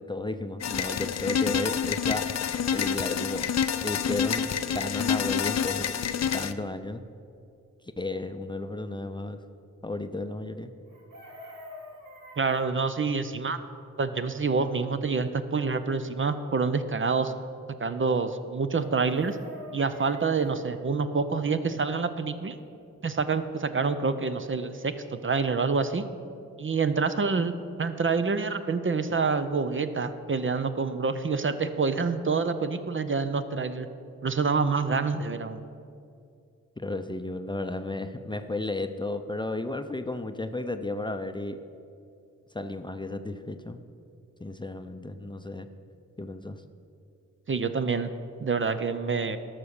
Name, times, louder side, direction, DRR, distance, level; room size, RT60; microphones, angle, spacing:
voice 1, 0.0-2.3 2.7-3.5 3.8-6.0 6.3-7.0 8.0-9.4 9.8-10.7 36.8-41.6 42.5-43.8 44.4-45.7 46.2-46.6, left 2 dB, 15° left, 8 dB, 0.6 m, -33 dB
sound 1, 0.6-6.5, left 8 dB, 60° left, 0.5 m, -28 dB
Chicken rooster, 10.9-12.7 18.7-20.6 22.8-22.9 23.2-23.4, left 1 dB, 80° right, 2.2 m, -46 dB
voice 2, 12.4-13.6 14.0-17.3 17.8-19.4 19.7-22.6 23.0-26.1 26.6-27.5 27.8-33.9 34.2-35.6 47.5-48.1 48.4-49.4, right 4 dB, 40° right, 10 dB, 0.6 m, -27 dB
12.5 x 5.8 x 6.5 m, 2.5 s
cardioid pair, 60°, 31 cm